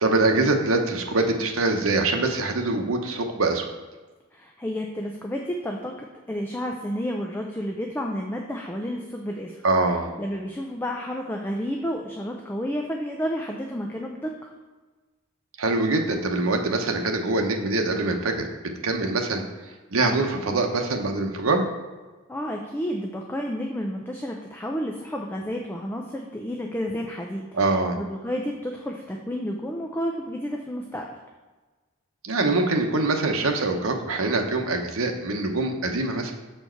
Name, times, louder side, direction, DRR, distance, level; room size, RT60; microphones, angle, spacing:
voice 1, 0.0-3.6 9.6-10.1 15.6-18.5 18.8-19.4 19.9-21.7 27.5-28.0 32.2-36.3, right 2 dB, 90° right, 3 dB, 0.9 m, -24 dB
voice 2, 4.3-9.6 10.2-14.5 22.3-27.6 28.0-31.1, equal, 10° left, 1 dB, 0.4 m, -31 dB
7.0 x 4.5 x 4.4 m, 1.3 s
head